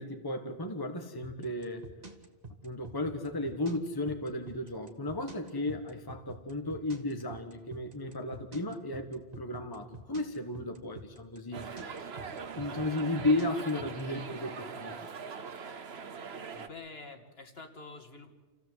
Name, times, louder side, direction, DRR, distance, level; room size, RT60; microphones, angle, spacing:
voice 1, 0.0-1.9 2.6-11.7 12.6-14.9, left 2 dB, 20° left, 5 dB, 1.4 m, -34 dB
sound 1, 1.2-14.0, right 3 dB, 35° right, 1.9 m, -46 dB
sound 2, 11.5-16.7, right 5 dB, 60° right, 1.3 m, -42 dB
voice 2, 16.5-18.3, left 3 dB, 55° left, 4 dB, 2.4 m, -48 dB
28.5 x 16.0 x 8.0 m, 1.3 s
omnidirectional pair, 1.3 m